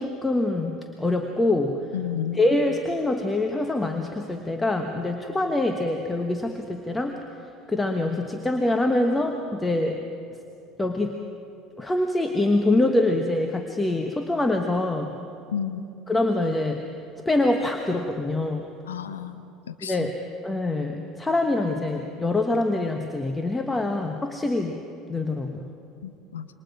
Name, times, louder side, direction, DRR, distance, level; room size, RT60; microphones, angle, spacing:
voice 1, 0.0-1.8 2.3-7.2 7.7-10.0 10.8-11.2 11.8-15.1 16.1-16.8 17.2-18.7 19.8-20.1 20.4-24.8 25.1-25.7, left 2 dB, 15° left, 5 dB, 1.3 m, -25 dB
voice 2, 1.9-2.4 15.5-15.8 18.9-19.4 19.8-20.1 26.0-26.5, left 9 dB, 75° left, 10 dB, 0.9 m, -31 dB
27.0 x 23.5 x 4.9 m, 2.7 s
figure-of-eight pair, 65°, 0 cm